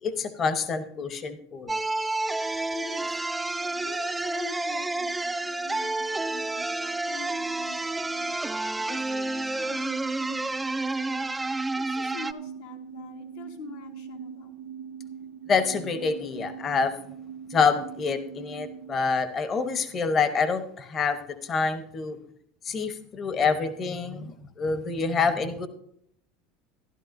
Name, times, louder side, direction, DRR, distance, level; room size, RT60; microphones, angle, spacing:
voice 1, 0.0-1.8 15.5-16.9 17.5-22.2 22.6-25.7, left 5 dB, 35° left, 11 dB, 1.0 m, -27 dB
sound 1, 1.7-12.3, right 2 dB, 10° right, 0.4 m, -30 dB
voice 2, 2.7-3.2 3.6-8.3 8.8-11.3 11.7-14.6, left 6 dB, 80° left, 2 dB, 1.7 m, -45 dB
sound 2, 12.1-18.9, right 8 dB, 75° right, 1.1 m, -42 dB
13.0 x 11.5 x 2.6 m, 0.70 s
hypercardioid pair, 95°, 0 cm